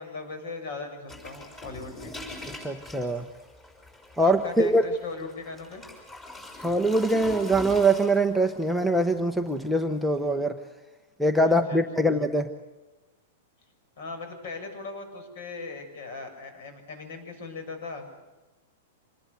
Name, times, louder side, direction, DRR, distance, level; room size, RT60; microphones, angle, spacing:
voice 1, 0.0-2.2 4.2-5.8 11.4-12.1 14.0-18.1, left 4 dB, 55° left, 7 dB, 7.0 m, -39 dB
sound 1, 1.1-10.3, left 1 dB, 15° left, 5.7 m, -43 dB
voice 2, 2.6-3.2 4.2-4.8 6.6-10.6 11.2-12.5, right 1 dB, ahead, 7 dB, 0.8 m, -23 dB
26.5 x 20.0 x 8.2 m, 1.1 s
supercardioid pair, 170°, 0 cm